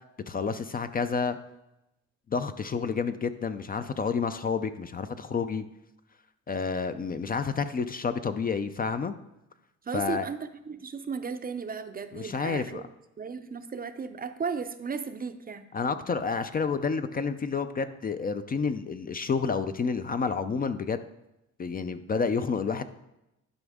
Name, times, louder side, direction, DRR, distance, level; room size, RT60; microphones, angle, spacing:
voice 1, 0.3-1.4 2.3-5.6 6.5-9.1 9.9-10.3 12.1-12.8 15.7-21.0 21.6-22.8, left 5 dB, 30° left, 10 dB, 0.4 m, -29 dB
voice 2, 9.8-12.9 13.2-15.7, right 5 dB, 30° right, 10 dB, 0.5 m, -35 dB
11.5 x 5.1 x 3.6 m, 0.89 s
cardioid pair, 90°, 30 cm